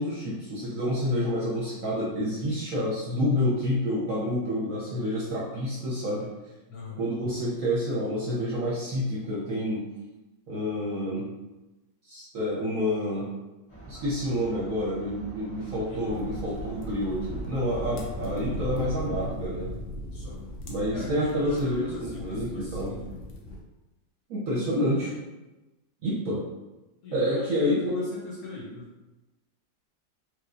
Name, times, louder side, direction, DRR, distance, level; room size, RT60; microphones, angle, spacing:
voice 1, 0.0-6.3 7.0-9.9 10.5-11.2 12.0-13.3 13.9-19.7 20.6-23.0 24.3-25.2 26.0-26.4 27.1-28.1, equal, 65° right, -6 dB, 0.8 m, -28 dB
voice 2, 6.7-7.1 15.8-16.3 20.1-20.5 20.9-23.3 27.0-28.9, left 4 dB, 65° left, -4 dB, 1.0 m, -41 dB
sound 1, 13.7-19.3, right 2 dB, 35° left, 0.5 m, -45 dB
sound 2, 16.1-23.6, equal, 85° left, 0.6 m, -38 dB
3.0 x 3.0 x 2.5 m, 1.1 s
omnidirectional pair, 2.0 m